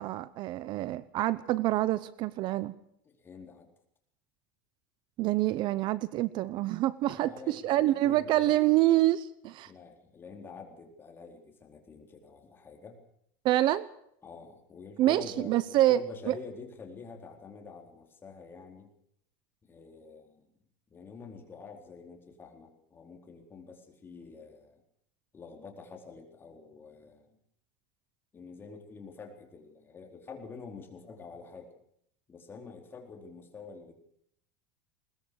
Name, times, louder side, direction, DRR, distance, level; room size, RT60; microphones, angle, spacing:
voice 1, 0.0-2.7 5.2-9.7 13.4-13.9 15.0-16.3, right 15 dB, 45° right, 17 dB, 0.8 m, -27 dB
voice 2, 3.1-3.7 7.0-8.6 9.6-13.0 14.2-18.9 19.6-20.5 20.9-24.8 25.3-27.4 28.3-31.7 32.3-33.9, left 4 dB, 20° left, 3 dB, 4.1 m, -47 dB
21.5 x 19.5 x 6.5 m, 0.70 s
supercardioid pair, 150°, 11 cm